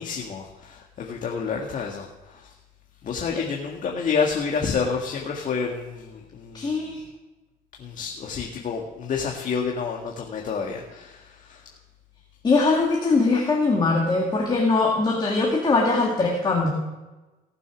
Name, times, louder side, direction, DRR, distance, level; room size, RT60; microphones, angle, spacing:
voice 1, 0.0-2.5 3.0-6.9 7.8-11.7, left 5 dB, 50° left, 0 dB, 1.9 m, -29 dB
voice 2, 6.5-7.0 12.4-16.7, left 3 dB, 25° left, -1 dB, 2.3 m, -21 dB
18.0 x 6.8 x 6.3 m, 1.1 s
cardioid pair, 110°, 17 cm